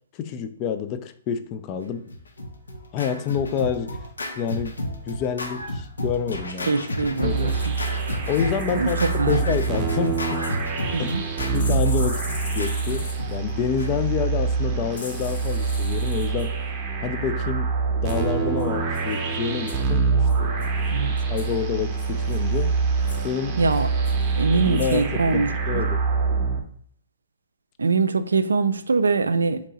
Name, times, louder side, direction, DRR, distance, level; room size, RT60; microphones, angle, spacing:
voice 1, 0.1-2.1 2.9-4.0 4.4-6.8 7.2-7.6 8.3-10.4 11.0-11.1 11.5-12.2 12.5-16.6 17.0-17.7 18.0-20.8 21.3-22.8 23.2-23.6 24.5-26.0, left 8 dB, 35° left, 0.3 m, -28 dB
Scratching (performance technique), 2.1-14.2, left 1 dB, 90° left, 0.7 m, -32 dB
voice 2, 6.7-7.5 8.7-8.9 9.2-9.4 10.9-11.2 20.9-21.1 23.6-23.9 24.4-25.8 27.8-29.6, right 4 dB, 85° right, 0.3 m, -23 dB
sound 1, 7.2-26.6, right 5 dB, 30° right, 0.6 m, -25 dB
sound 2, 7.3-10.7 11.5-13.4 14.9-16.5 18.1-18.3 18.6-18.7 18.9-19.2 19.7-19.9 20.2-20.9 21.4-21.5 22.0-22.6 23.0-23.3 23.7-24.3 24.7-25.0 25.3-25.4, left 3 dB, 60° left, 1.2 m, -41 dB
2.9 x 2.6 x 4.0 m
hypercardioid pair, 130°, 0 cm